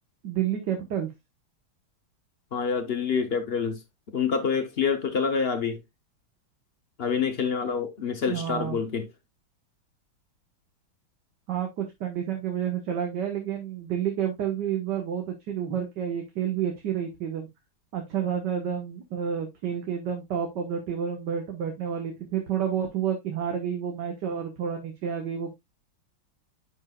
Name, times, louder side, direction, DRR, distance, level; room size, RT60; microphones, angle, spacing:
voice 1, 0.2-1.1 8.3-8.8 11.5-17.5 17.9-25.5, right 8 dB, 60° right, 1.8 m, -30 dB
voice 2, 2.5-3.8 4.1-5.8 7.0-9.1, left 6 dB, 50° left, 0.7 m, -27 dB
9.9 x 5.4 x 2.3 m
omnidirectional pair, 2.3 m